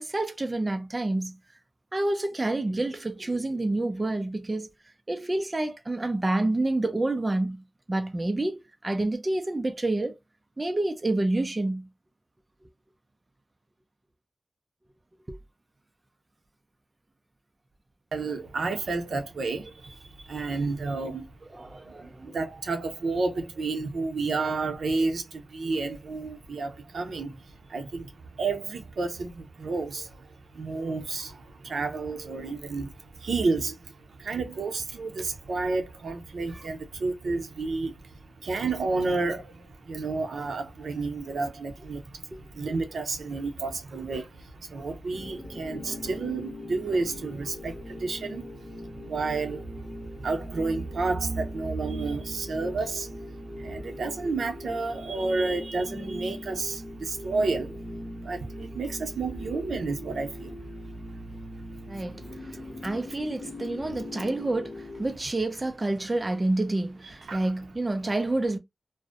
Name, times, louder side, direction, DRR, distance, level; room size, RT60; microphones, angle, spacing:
voice 1, 0.0-1.4 1.9-4.7 5.1-10.2 10.6-11.9 15.3-15.4 21.5-22.4 36.5-36.7 42.3-42.4 61.9-68.6, right 2 dB, 25° right, 0.4 m, -28 dB
voice 2, 18.1-21.3 21.7-27.4 27.7-53.3 53.6-57.8 58.2-61.4 61.7-62.9 67.3-67.4, right 3 dB, 85° right, 0.6 m, -31 dB
sound 1, 45.1-65.1, left 1 dB, 45° left, 0.6 m, -40 dB
2.5 x 2.0 x 2.4 m
wide cardioid pair, 95°, 0 cm